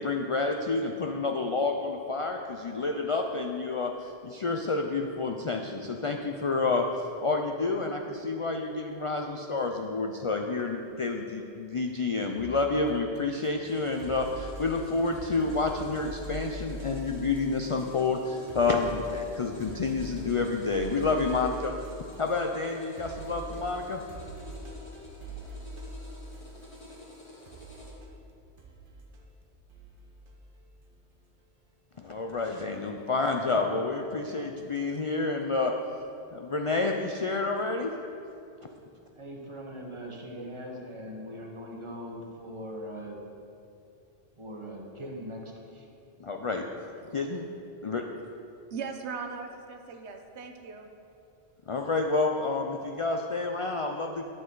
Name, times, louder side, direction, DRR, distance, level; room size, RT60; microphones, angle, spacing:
voice 1, 0.0-21.7 22.2-24.0 32.0-35.7 36.3-37.9 46.2-46.6 47.1-47.4 47.8-48.0 51.7-54.3, left 3 dB, 50° left, 3 dB, 0.4 m, -29 dB
sound 1, 12.4-18.2 18.5-27.1 27.4-30.6 31.9-32.2, right 1 dB, 50° right, 1.1 m, -44 dB
sound 2, 13.6-27.9, left 1 dB, 30° left, 1.8 m, -49 dB
voice 2, 39.1-43.2 44.4-45.9, equal, 30° right, 0 dB, 1.1 m, -41 dB
voice 3, 48.7-50.9, right 5 dB, 75° right, 5 dB, 1.0 m, -38 dB
11.0 x 7.5 x 3.8 m, 2.7 s
omnidirectional pair, 1.1 m